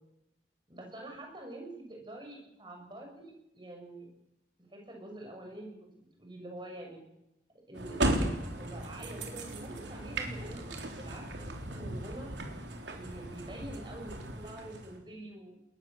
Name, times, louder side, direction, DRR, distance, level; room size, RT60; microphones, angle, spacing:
voice 1, 0.7-4.1 4.7-7.0 7.7-8.3 8.6-12.3 12.9-15.6, right 1 dB, 25° right, 1 dB, 6.4 m, -46 dB
sound 1, 7.7-15.0, right 1 dB, 80° right, 3.7 m, -36 dB
22.0 x 20.5 x 7.4 m, 0.85 s
head